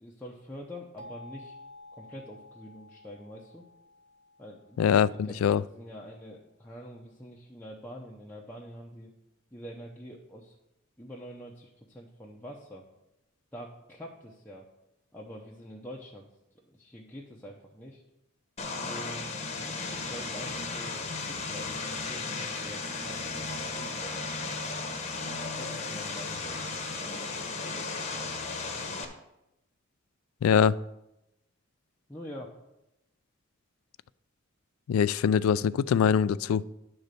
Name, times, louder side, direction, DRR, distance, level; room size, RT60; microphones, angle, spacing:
voice 1, 0.0-1.6 1.9-3.6 4.4-4.9 5.3-9.1 9.5-10.6 11.0-12.8 13.5-14.7 15.1-16.3 16.6-18.0 18.8-24.3 25.6-26.8 32.1-32.5, equal, 10° left, 0.7 m, -45 dB
sound 1, 1.0-5.7, left 2 dB, 25° right, 1.2 m, -51 dB
voice 2, 4.8-5.6 30.4-30.8 34.9-36.6, left 7 dB, 85° left, 0.3 m, -23 dB
Vehicle, 18.6-29.1, left 3 dB, 30° left, 1.0 m, -35 dB
10.5 x 3.9 x 6.7 m
head